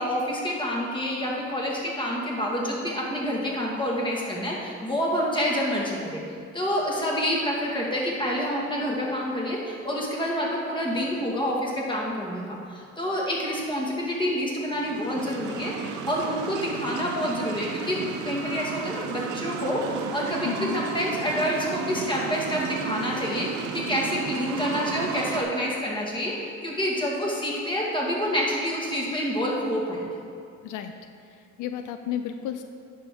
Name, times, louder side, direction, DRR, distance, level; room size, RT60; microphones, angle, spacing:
voice 1, 0.0-6.2 6.5-30.1, equal, 15° left, -3 dB, 2.0 m, -28 dB
sound 1, 14.7-25.4, right 6 dB, 80° right, 0.7 m, -33 dB
voice 2, 20.4-20.8 30.6-30.9 31.6-32.6, left 10 dB, 85° left, 8 dB, 0.5 m, -32 dB
10.5 x 6.3 x 3.8 m, 2.4 s
cardioid pair, 90°, 30 cm